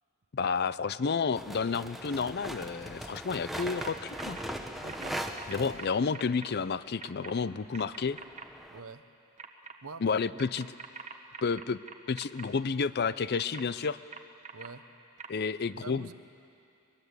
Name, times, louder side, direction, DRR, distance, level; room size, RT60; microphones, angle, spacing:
voice 1, 0.3-4.4 5.5-8.2 10.0-10.7 11.4-11.8 12.1-14.0 15.3-16.1, left 5 dB, 45° left, 16 dB, 0.5 m, -30 dB
sound 1, 1.4-6.3 7.3-8.8, equal, ahead, 0.9 m, -40 dB
sound 2, 3.6-3.9 4.2-4.4 4.9-6.5 7.0-7.3 7.7-8.4 9.4-9.7 10.4-12.5 13.3-14.7 15.2-15.3, right 6 dB, 30° right, 1.1 m, -44 dB
voice 2, 4.8-5.2 5.6-5.7 8.7-9.0 9.8-10.2 14.5-14.9 15.7-16.1, right 4 dB, 70° right, 11 dB, 0.9 m, -45 dB
22.5 x 21.0 x 8.2 m, 2.6 s
head